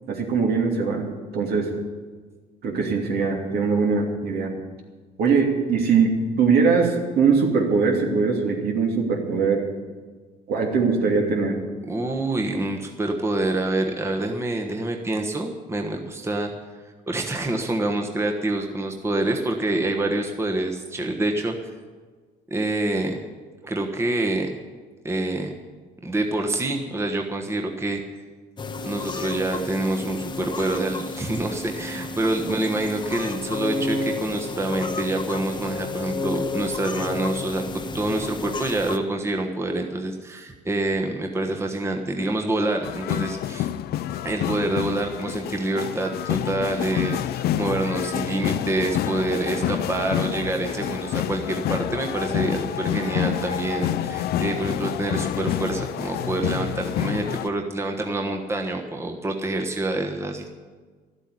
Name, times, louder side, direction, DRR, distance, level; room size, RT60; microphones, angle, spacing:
voice 1, 0.1-1.7 2.6-4.5 5.2-9.7 10.5-11.6 32.4-32.5, right 5 dB, 70° right, 1 dB, 2.8 m, -21 dB
voice 2, 11.9-16.5 17.1-21.7 22.5-23.2 23.6-24.5 25.0-25.5 26.0-28.0 28.8-37.6 37.9-43.7 44.2-60.5, right 2 dB, 15° right, 2 dB, 1.2 m, -26 dB
sound 1, 28.6-39.0, left 3 dB, 25° left, 0.9 m, -31 dB
sound 2, 42.8-57.5, left 11 dB, 70° left, 0.5 m, -28 dB
13.0 x 8.2 x 9.8 m, 1.5 s
cardioid pair, 110°, 17 cm